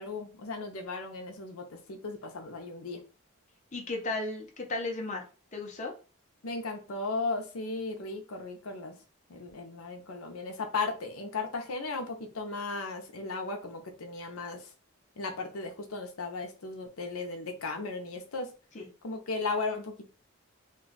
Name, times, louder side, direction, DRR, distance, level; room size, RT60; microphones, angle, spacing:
voice 1, 0.0-3.0 6.4-9.0 9.3-14.7 15.2-18.5 19.0-20.1, left 3 dB, 80° left, 4 dB, 0.6 m, -36 dB
voice 2, 3.7-5.2 5.5-5.9 18.7-18.9, left 2 dB, 35° left, 0 dB, 0.7 m, -34 dB
2.6 x 2.3 x 3.9 m, 0.34 s
head